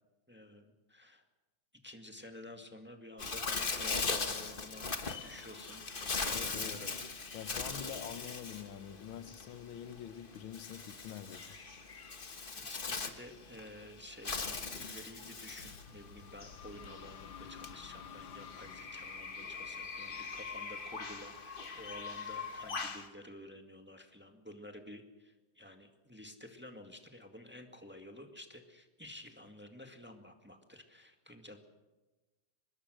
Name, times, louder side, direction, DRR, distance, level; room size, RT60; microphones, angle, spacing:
voice 1, 0.3-1.2 1.8-7.3 12.6-31.6, left 1 dB, 5° right, 4 dB, 1.7 m, -52 dB
Bird, 3.2-23.1, left 4 dB, 30° left, 1.3 m, -40 dB
voice 2, 6.3-6.8 7.3-11.6, left 9 dB, 90° left, 13 dB, 1.8 m, -46 dB
sound 1, 15.6-21.2, left 8 dB, 75° left, 1.9 m, -52 dB
25.0 x 20.5 x 6.5 m, 1.2 s
omnidirectional pair, 2.2 m